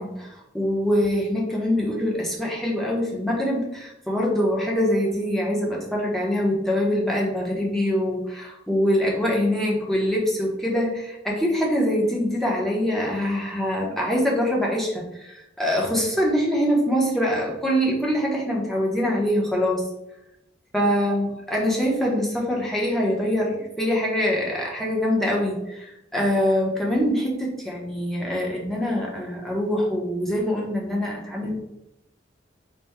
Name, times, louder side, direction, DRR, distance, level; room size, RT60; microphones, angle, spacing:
voice 1, 0.0-19.9 20.7-31.5, equal, ahead, -3 dB, 0.8 m, -24 dB
4.2 x 2.2 x 3.5 m, 0.90 s
head